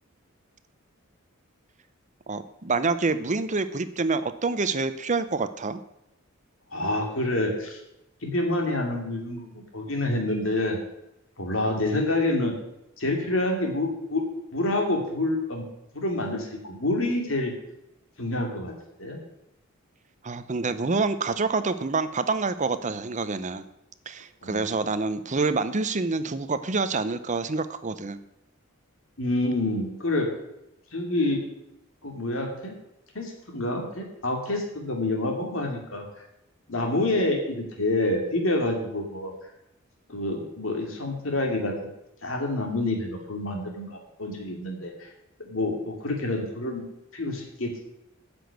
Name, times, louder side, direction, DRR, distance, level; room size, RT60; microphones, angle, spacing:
voice 1, 2.3-5.8 20.2-23.7 24.1-28.2, right 3 dB, 35° right, 12 dB, 0.7 m, -27 dB
voice 2, 6.7-7.8 8.2-10.8 11.4-12.5 13.0-14.2 14.5-15.6 15.9-17.5 18.2-18.7 19.0-19.2 24.4-24.7 29.2-30.3 30.9-31.4 32.0-32.7 33.1-36.0 36.7-39.3 40.1-41.7 42.2-45.1 45.4-46.8 47.1-47.8, left 2 dB, 70° left, 1 dB, 2.6 m, -27 dB
9.9 x 6.1 x 8.2 m, 0.86 s
head